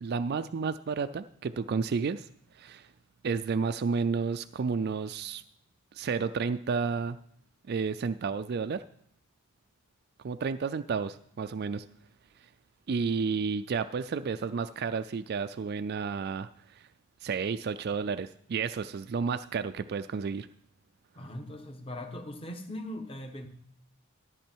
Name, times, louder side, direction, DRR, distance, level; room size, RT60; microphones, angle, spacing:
voice 1, 0.0-2.3 2.5-2.9 3.2-5.4 5.9-7.2 7.7-8.8 10.2-11.8 12.4-12.5 12.9-16.9 17.2-20.5, right 5 dB, 50° right, 11 dB, 0.3 m, -31 dB
voice 2, 21.1-23.5, left 1 dB, 25° left, 6 dB, 1.2 m, -40 dB
13.0 x 8.1 x 4.5 m, 0.68 s
head